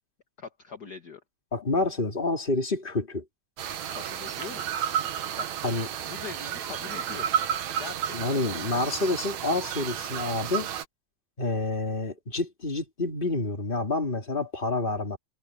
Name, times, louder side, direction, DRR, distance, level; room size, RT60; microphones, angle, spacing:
voice 1, 0.4-1.2 3.9-4.6 5.4-5.5 6.1-7.3 7.8-8.4, left 5 dB, 40° left, 1.9 m, -42 dB
voice 2, 1.5-3.2 5.6-5.9 8.1-10.7 11.4-15.2, left 2 dB, 20° left, 2.7 m, -28 dB
sound 1, 3.6-10.9, right 9 dB, 75° right, 2.6 m, -32 dB
omnidirectional pair, 3.3 m